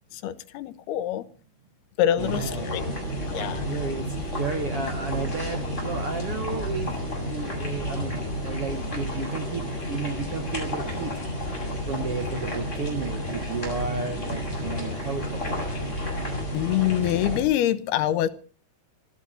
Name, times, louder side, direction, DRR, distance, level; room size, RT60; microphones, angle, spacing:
voice 1, 0.1-1.2 2.0-2.9 3.3-3.7 16.5-18.3, left 12 dB, 85° left, 12 dB, 3.0 m, -25 dB
sound 1, 2.2-17.4, left 1 dB, 15° left, 7.5 m, -31 dB
voice 2, 2.2-2.7 3.6-4.1 4.4-6.9 7.3-9.6 9.9-11.1 11.9-15.2 15.5-15.6, right 5 dB, 60° right, 6 dB, 1.6 m, -32 dB
21.5 x 15.5 x 4.4 m, 0.40 s
omnidirectional pair, 4.5 m